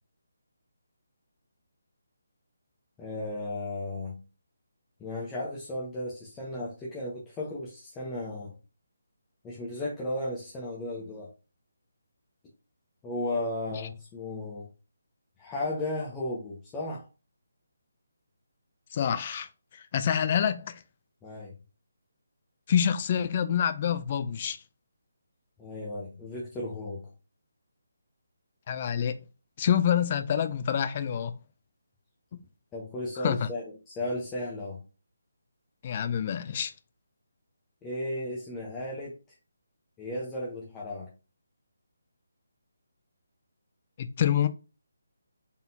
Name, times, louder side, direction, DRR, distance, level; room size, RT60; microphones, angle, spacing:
voice 1, 3.0-4.2 5.0-8.5 9.4-11.3 13.0-14.7 15.4-17.0 21.2-21.5 25.6-27.1 32.7-34.8 37.8-39.1 40.0-41.1, left 1 dB, 15° left, 0.9 m, -35 dB
voice 2, 18.9-20.8 22.7-24.6 28.7-29.2 29.6-31.3 32.3-32.4 33.2-33.5 35.8-36.7 44.0-44.5, left 9 dB, 35° left, 0.4 m, -27 dB
3.9 x 3.6 x 2.7 m
figure-of-eight pair, 150°, 0 cm